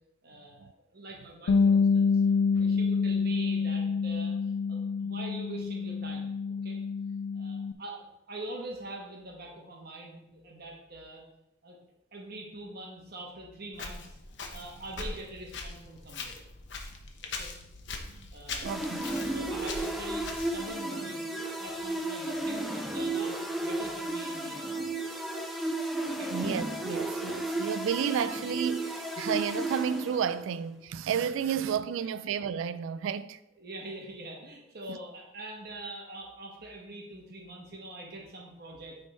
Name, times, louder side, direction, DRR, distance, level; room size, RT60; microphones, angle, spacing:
voice 1, 0.2-6.4 6.6-6.8 7.3-8.0 8.3-11.2 11.6-11.8 12.1-14.2 14.5-16.4 17.2-17.5 18.3-18.7 19.2-21.3 21.6-24.8 26.0-26.3 32.0-32.1 33.6-39.0, right 1 dB, 50° right, 1.1 m, -44 dB
Bass guitar, 1.5-7.7, left 5 dB, 85° left, 0.3 m, -27 dB
Walk footsteps, 13.7-20.7, left 3 dB, 60° left, 0.9 m, -41 dB
sound 1, 18.6-30.5, right 2 dB, ahead, 0.8 m, -33 dB
voice 2, 18.6-19.0 26.3-33.4 34.9-35.0, right 8 dB, 75° right, 0.3 m, -31 dB
9.2 x 3.6 x 4.1 m
head